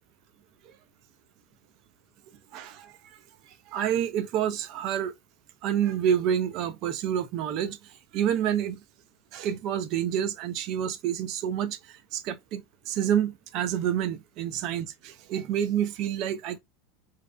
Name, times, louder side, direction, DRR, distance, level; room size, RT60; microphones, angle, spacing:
voice 1, 2.5-2.9 3.7-5.1 5.6-7.8 8.1-8.8 9.3-11.8 12.1-12.6 12.9-16.6, right 9 dB, 55° right, 0.4 m, -28 dB
2.6 x 2.0 x 2.3 m
hypercardioid pair, 85°, 0 cm